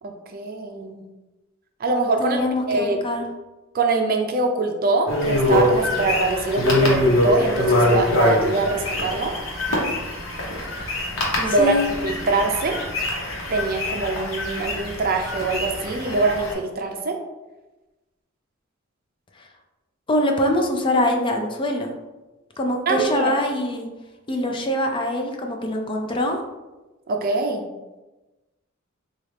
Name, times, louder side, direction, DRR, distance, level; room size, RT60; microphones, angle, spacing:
voice 1, 0.0-1.0 1.8-2.4 2.7-3.0 3.7-9.3 11.4-11.8 12.0-12.8 13.5-17.2 22.9-23.3 27.1-27.7, right 3 dB, 45° right, 4 dB, 0.4 m, -23 dB
voice 2, 2.2-3.3 11.5-11.9 19.4-19.5 20.1-21.9 22.6-23.9 24.3-26.4, left 1 dB, 25° left, 2 dB, 0.4 m, -23 dB
sound 1, 5.1-16.5, left 1 dB, 80° left, 1.0 m, -24 dB
4.0 x 2.4 x 3.3 m, 1.1 s
head